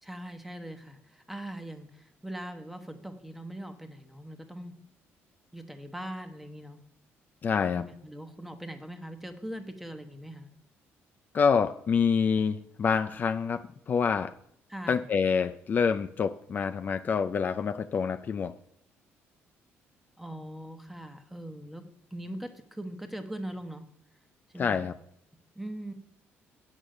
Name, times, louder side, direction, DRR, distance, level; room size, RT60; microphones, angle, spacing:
voice 1, 0.0-4.7 5.5-6.8 7.8-10.5 14.7-15.0 20.2-21.8 22.1-23.8 24.5-24.9 25.5-25.9, right 1 dB, 5° right, 7 dB, 1.1 m, -41 dB
voice 2, 7.4-7.9 11.3-14.3 14.9-18.5 24.6-24.9, left 6 dB, 40° left, 9 dB, 0.4 m, -27 dB
8.7 x 6.3 x 6.5 m, 0.72 s
cardioid pair, 120°, 5 cm